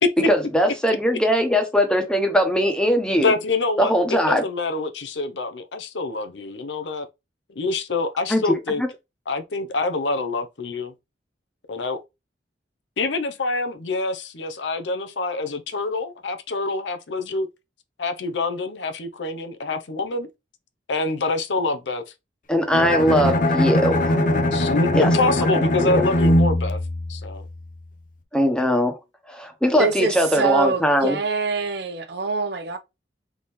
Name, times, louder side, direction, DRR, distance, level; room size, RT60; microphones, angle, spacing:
voice 1, 0.3-3.3 3.8-4.4 8.3-8.9 22.5-24.2 24.9-25.1 25.5-26.0 28.3-28.9 29.3-31.2, equal, 5° left, 1.0 m, -20 dB
voice 2, 3.2-7.1 7.6-8.8 9.3-10.9 11.7-12.0 13.0-17.5 18.0-20.3 20.9-22.0 24.5-26.8 27.1-27.5, left 3 dB, 90° left, 0.7 m, -26 dB
Bowed string instrument, 22.7-27.8, left 1 dB, 50° left, 0.8 m, -21 dB
voice 3, 29.8-32.8, right 4 dB, 65° right, 0.8 m, -25 dB
4.1 x 3.6 x 3.1 m
head